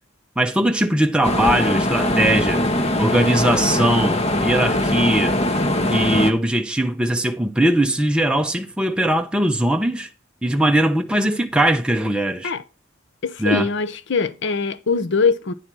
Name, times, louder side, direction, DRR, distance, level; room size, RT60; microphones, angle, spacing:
voice 1, 0.4-2.7 3.0-5.4 5.9-10.1 10.4-12.5 13.4-13.7, right 1 dB, 5° right, 0.5 m, -20 dB
sound 1, 1.2-6.3, left 1 dB, 30° left, 0.8 m, -21 dB
voice 2, 13.2-15.5, left 5 dB, 65° left, 0.7 m, -22 dB
10.0 x 4.3 x 6.0 m
head